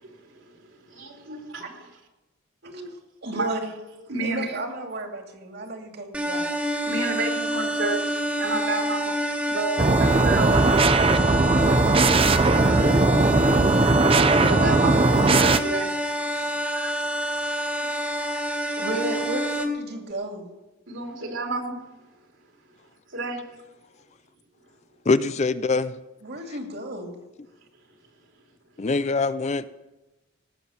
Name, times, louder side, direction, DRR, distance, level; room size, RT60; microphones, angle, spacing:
voice 1, 0.0-0.4 0.9-1.4 2.7-2.9 3.3-3.5 4.1-4.6 6.8-9.2 9.5-10.5 14.1-15.9 16.7-17.0 18.9-19.0 20.9-21.8 23.1-23.4, right 3 dB, 70° right, 3.2 m, -30 dB
voice 2, 3.2-3.7 4.2-6.5 10.2-12.7 16.3-16.6 17.8-18.4 18.8-20.5 26.2-27.2, right 2 dB, 55° right, 2.5 m, -33 dB
sound 1, 6.1-19.7, equal, 5° right, 1.8 m, -27 dB
sound 2, 9.8-15.6, right 3 dB, 25° right, 0.6 m, -19 dB
voice 3, 25.1-25.9 28.8-29.7, left 3 dB, 35° left, 0.4 m, -23 dB
18.5 x 7.7 x 7.1 m
head